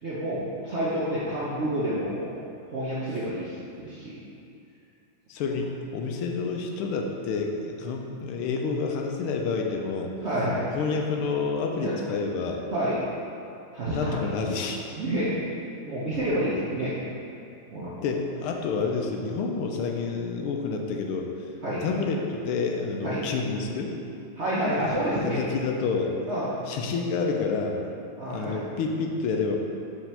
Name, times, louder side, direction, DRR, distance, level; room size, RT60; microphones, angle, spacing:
voice 1, 0.0-2.3 2.7-4.1 10.2-10.7 11.8-11.9 12.7-13.0 13.7-14.3 15.0-15.3 15.8-17.0 17.7-17.9 21.6-21.8 23.0-23.3 24.4-25.4 26.3-26.5 28.2-28.6, right 1 dB, 60° right, -8 dB, 0.7 m, -28 dB
voice 2, 5.3-10.1 10.8-12.6 13.9-14.8 18.0-21.3 21.8-23.9 24.7-26.2 26.7-27.8 28.3-29.6, left 4 dB, 85° left, 2 dB, 1.5 m, -29 dB
4.8 x 4.4 x 5.5 m, 2.6 s
omnidirectional pair, 2.3 m